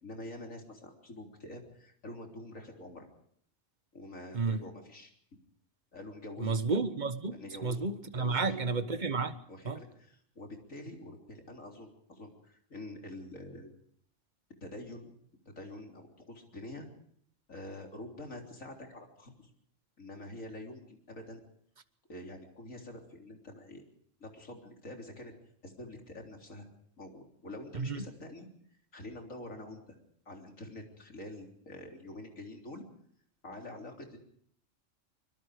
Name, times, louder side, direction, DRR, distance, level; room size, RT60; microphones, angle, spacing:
voice 1, 0.0-3.1 3.9-5.1 5.9-6.6 7.3-8.7 9.5-13.7 14.6-15.1 15.5-16.9 17.5-19.5 20.0-21.4 22.1-23.8 24.2-25.3 25.6-26.7 27.0-28.5 28.9-30.0 30.3-32.8 33.4-34.2, left 1 dB, 80° left, 4.0 m, -46 dB
voice 2, 6.4-9.3 9.7-9.8 27.8-27.9, right 4 dB, 35° right, 1.3 m, -31 dB
24.5 x 22.0 x 5.0 m
omnidirectional pair, 1.3 m